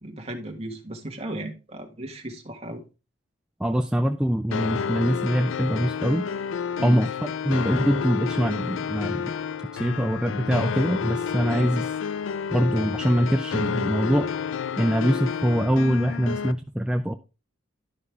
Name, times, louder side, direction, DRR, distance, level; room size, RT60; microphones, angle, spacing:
voice 1, 0.0-2.8 6.8-7.0 11.5-11.7, right 1 dB, 30° right, 1.6 m, -35 dB
voice 2, 3.6-6.2 6.8-9.3 9.7-11.9 12.5-14.3 14.8-17.1, equal, 5° right, 0.4 m, -23 dB
sound 1, 4.5-16.5, left 7 dB, 70° left, 0.4 m, -30 dB
11.5 x 5.4 x 3.4 m
head